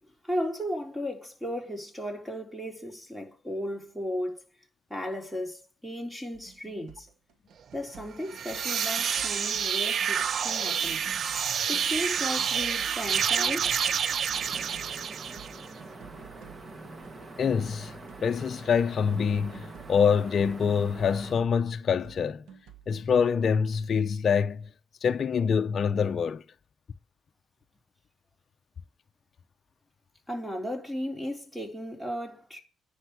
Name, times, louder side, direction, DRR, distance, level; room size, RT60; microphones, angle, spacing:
voice 1, 0.2-4.5 4.9-7.1 7.7-11.0 11.7-13.7 30.3-32.6, equal, 5° right, 3.7 m, -35 dB
sound 1, 6.3-24.0, right 8 dB, 90° right, 1.4 m, -52 dB
sound 2, 8.2-15.7, right 7 dB, 55° right, 0.4 m, -28 dB
sound 3, 14.3-21.3, right 2 dB, 35° right, 1.5 m, -45 dB
voice 2, 17.4-17.9 18.2-22.4 22.9-24.7 25.0-26.4, left 6 dB, 50° left, 0.6 m, -25 dB
10.0 x 5.3 x 8.0 m
cardioid pair, 90°, 0 cm